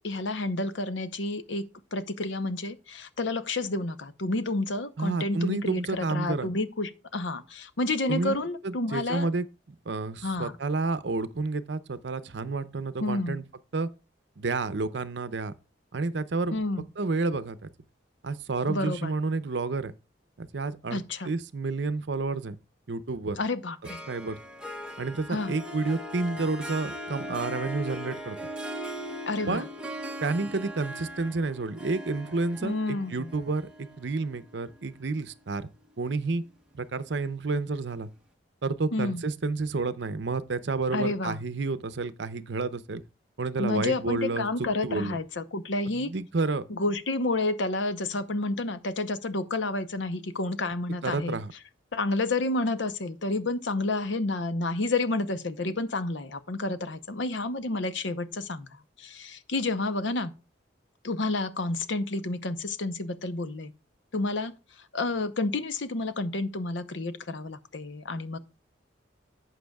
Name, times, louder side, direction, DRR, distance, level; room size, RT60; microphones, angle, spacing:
voice 1, 0.0-1.6 1.9-9.3 10.2-10.5 13.0-13.4 16.5-16.8 18.7-19.1 20.9-21.3 23.4-24.0 25.3-25.5 29.3-29.6 32.6-33.3 38.9-39.2 40.9-41.4 43.6-46.1 46.7-51.4 51.9-60.3 61.0-63.7 64.1-64.5 64.9-68.4, left 2 dB, 70° left, 0.8 m, -30 dB
voice 2, 5.0-6.5 8.1-8.4 8.6-9.5 9.9-13.4 13.7-13.9 14.4-15.5 15.9-16.6 17.0-17.7 18.2-19.9 20.4-22.6 22.9-23.4 24.1-24.4 25.0-28.4 29.5-29.7 30.2-35.7 36.0-36.4 36.7-38.1 38.6-43.0 43.4-44.5 44.8-45.2 45.9-46.6 51.0-51.5, right 3 dB, 65° right, 0.7 m, -30 dB
Harp, 23.8-35.3, equal, 5° right, 1.0 m, -39 dB
11.5 x 7.8 x 2.3 m
head